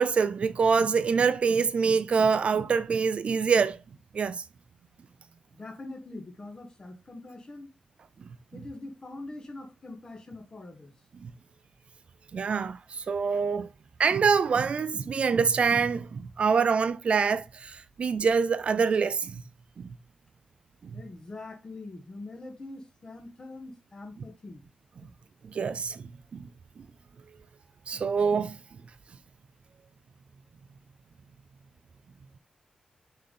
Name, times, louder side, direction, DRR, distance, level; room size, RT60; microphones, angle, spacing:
voice 1, 0.0-3.8 4.1-4.4 11.2-11.3 12.3-13.7 14.0-19.4 25.5-26.0 26.3-26.4 27.9-28.6, right 5 dB, 45° right, 0.4 m, -25 dB
voice 2, 5.6-7.7 8.5-10.9 20.9-24.6, left 2 dB, 25° left, 1.3 m, -43 dB
6.6 x 4.1 x 3.7 m
wide cardioid pair, 150°, 3 cm